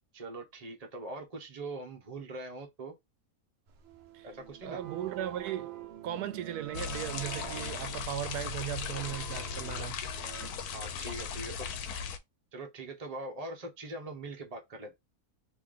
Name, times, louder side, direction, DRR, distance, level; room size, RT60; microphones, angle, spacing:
voice 1, 0.1-2.9 4.2-4.8 10.7-11.7 12.5-14.9, right 2 dB, 30° right, 1.0 m, -42 dB
sound 1, 3.7-10.5, right 10 dB, 65° right, 0.7 m, -45 dB
voice 2, 4.6-10.0, right 11 dB, 85° right, 1.1 m, -37 dB
sound 2, 6.7-12.2, left 6 dB, 80° left, 1.1 m, -38 dB
3.3 x 2.9 x 3.7 m
omnidirectional pair, 1.6 m